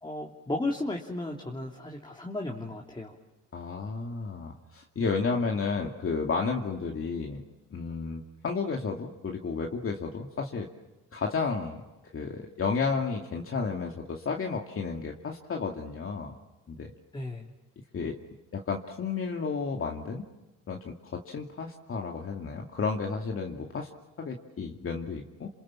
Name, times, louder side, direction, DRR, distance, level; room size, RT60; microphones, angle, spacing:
voice 1, 0.0-3.2 17.1-17.5, left 2 dB, 15° left, 0 dB, 3.1 m, -34 dB
voice 2, 3.5-7.4 7.7-10.7 11.1-11.8 12.1-16.4 16.7-16.9 17.9-18.2 18.5-20.3 20.7-23.9 24.2-25.5, left 4 dB, 45° left, 1 dB, 2.4 m, -32 dB
28.0 x 28.0 x 7.4 m, 1.1 s
cardioid pair, 90°, 30 cm